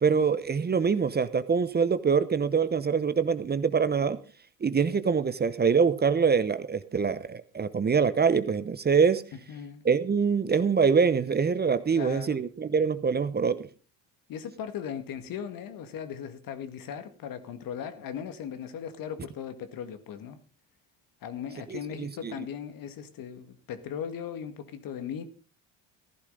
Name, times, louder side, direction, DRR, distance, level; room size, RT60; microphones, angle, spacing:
voice 1, 0.0-4.2 4.6-9.2 9.8-13.7 21.7-22.3, right 6 dB, 25° right, 0.9 m, -24 dB
voice 2, 9.5-9.8 11.9-12.4 14.3-20.4 21.2-25.2, left 8 dB, 60° left, 2.0 m, -38 dB
14.5 x 11.5 x 3.9 m
supercardioid pair, 80°, 38 cm